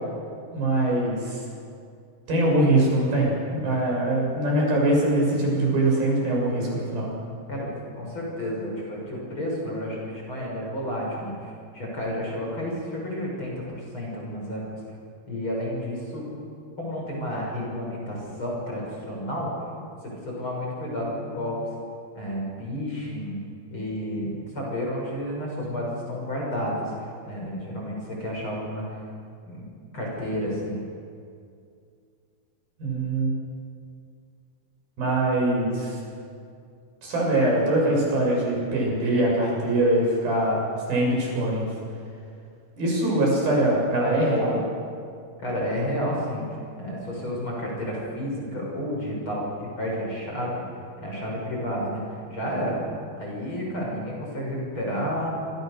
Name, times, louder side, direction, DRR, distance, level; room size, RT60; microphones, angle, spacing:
voice 1, 0.5-1.4 2.3-7.1 32.8-33.3 35.0-36.0 37.0-41.7 42.8-44.7, right 1 dB, 60° right, -3 dB, 8.9 m, -23 dB
voice 2, 7.5-14.6 15.3-16.2 16.8-19.5 20.0-21.6 22.1-23.4 23.7-29.0 29.5-29.6 29.9-30.8 45.4-46.5 46.8-50.6 51.0-52.7 53.2-55.3, equal, 30° left, -2 dB, 6.9 m, -31 dB
26.5 x 26.0 x 6.8 m, 2.4 s
omnidirectional pair, 4.8 m